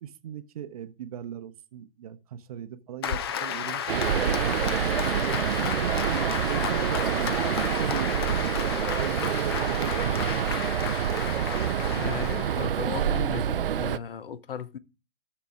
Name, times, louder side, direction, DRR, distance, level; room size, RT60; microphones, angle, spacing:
voice 1, 0.0-3.9 4.3-5.2 5.6-6.2 6.4-10.4, right 9 dB, 35° right, 0.8 m, -39 dB
Applause, 3.0-13.1, left 8 dB, 25° left, 0.5 m, -33 dB
sound 1, 3.9-14.0, right 9 dB, 60° right, 0.4 m, -27 dB
voice 2, 11.9-14.8, left 8 dB, 60° left, 0.9 m, -36 dB
12.5 x 6.9 x 3.5 m
figure-of-eight pair, 130°, 32 cm